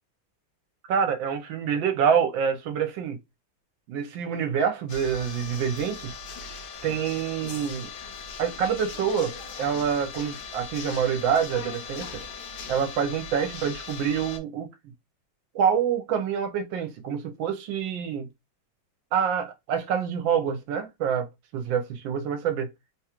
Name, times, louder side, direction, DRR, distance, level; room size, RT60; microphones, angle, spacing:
voice 1, 0.9-3.2 3.9-6.1 6.8-7.9 8.4-12.2 12.7-14.7 15.5-18.3 19.1-22.7, right 7 dB, 75° right, 1.3 m, -26 dB
sound 1, 4.9-14.4, left 5 dB, 70° left, 1.2 m, -39 dB
3.5 x 2.3 x 2.9 m
omnidirectional pair, 2.2 m